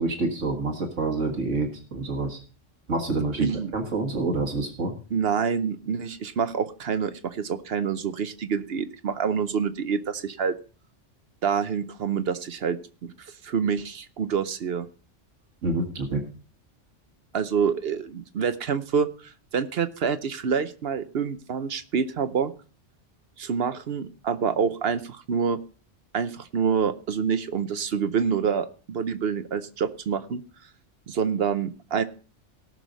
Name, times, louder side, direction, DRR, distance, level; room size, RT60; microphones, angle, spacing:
voice 1, 0.0-2.4 2.9-4.9 15.6-16.2, right 3 dB, 75° right, 3 dB, 2.0 m, -27 dB
voice 2, 3.4-3.7 5.1-10.6 11.4-13.1 13.4-14.9 17.3-22.5 23.4-25.6 26.1-30.4 31.1-32.0, right 6 dB, 55° right, 11 dB, 0.9 m, -27 dB
18.0 x 6.3 x 3.9 m, 0.38 s
omnidirectional pair, 1.3 m